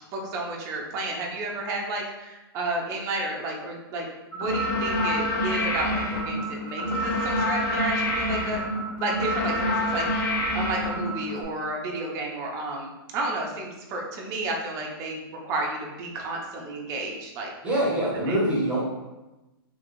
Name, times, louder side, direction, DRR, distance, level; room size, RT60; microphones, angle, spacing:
voice 1, 0.1-4.1 4.3-8.6 9.0-17.5 18.3-18.4, right 2 dB, 25° right, -1 dB, 0.5 m, -32 dB
sound 1, 4.3-11.4, left 1 dB, 50° left, 1.3 m, -27 dB
voice 2, 17.6-18.8, right 1 dB, 10° right, -5 dB, 0.9 m, -24 dB
2.9 x 2.8 x 2.6 m, 1.0 s
hypercardioid pair, 145°, 13 cm